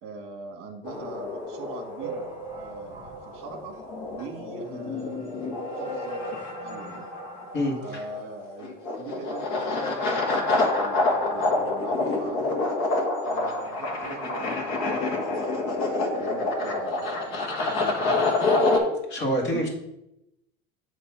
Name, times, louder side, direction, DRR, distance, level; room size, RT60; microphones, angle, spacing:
voice 1, 0.0-2.3 2.5-3.8 4.1-7.1 7.8-12.6 13.2-15.9 16.2-17.4 17.7-18.7 19.5-19.7, right 3 dB, 40° right, 5 dB, 1.4 m, -42 dB
sound 1, 0.8-18.8, left 2 dB, 55° left, 1.5 m, -27 dB
sound 2, 2.0-4.9 5.3-5.4 5.6-5.8 6.0-6.1 7.0-7.1 7.6-7.7, right 4 dB, 10° right, 2.2 m, -41 dB
voice 2, 19.1-19.7, equal, 35° left, 1 dB, 1.8 m, -25 dB
8.0 x 3.1 x 5.7 m, 0.86 s
cardioid pair, 150°, 32 cm